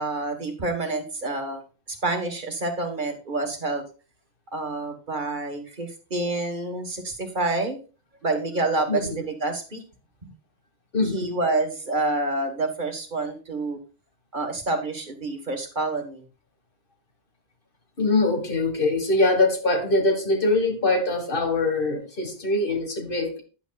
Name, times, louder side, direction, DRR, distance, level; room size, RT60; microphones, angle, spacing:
voice 1, 0.0-1.6 1.9-3.8 4.5-7.8 8.2-9.8 10.2-10.3 11.1-13.8 14.3-16.2, right 2 dB, 45° right, 5 dB, 1.5 m, -28 dB
voice 2, 10.9-11.3 18.0-23.4, left 2 dB, 50° left, 5 dB, 1.8 m, -23 dB
10.5 x 8.1 x 2.3 m, 0.34 s
omnidirectional pair, 1.1 m